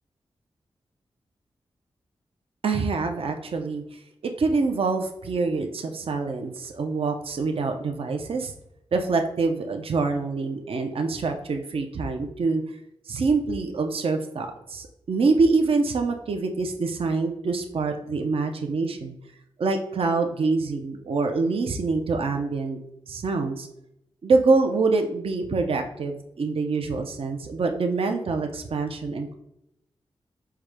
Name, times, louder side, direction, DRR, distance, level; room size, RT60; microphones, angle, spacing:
voice 1, 2.6-8.5 8.9-12.8 13.1-19.1 19.6-22.8 23.1-23.7 24.2-29.3, right 4 dB, 65° right, 5 dB, 0.5 m, -25 dB
4.7 x 2.2 x 4.8 m, 0.82 s
cardioid pair, 55°, 10 cm